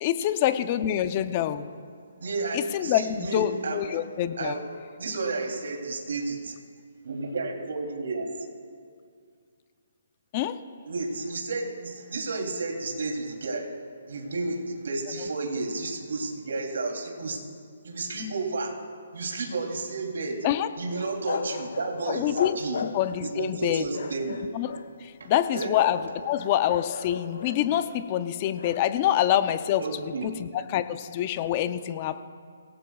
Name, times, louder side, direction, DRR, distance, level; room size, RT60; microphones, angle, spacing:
voice 1, 0.0-1.7 2.5-4.6 10.3-10.6 20.4-20.7 22.1-22.6 22.9-23.9 24.5-24.8 25.0-26.0 26.2-29.8 30.4-32.2, left 11 dB, 25° left, 11 dB, 0.5 m, -26 dB
voice 2, 2.2-4.0 4.4-4.7 5.0-6.6 7.0-8.3 10.8-13.7 14.1-17.4 17.8-18.7 19.1-20.5 20.8-22.9 23.2-24.4 25.2-25.7 29.8-30.3, right 3 dB, 75° right, 1 dB, 3.0 m, -32 dB
sound 1, 20.9-23.3 23.9-24.9 25.5-26.1 26.3-27.8 28.5-28.8, left 5 dB, 60° left, 0.9 m, -36 dB
26.0 x 17.5 x 2.4 m, 2.1 s
hypercardioid pair, 170°, 0 cm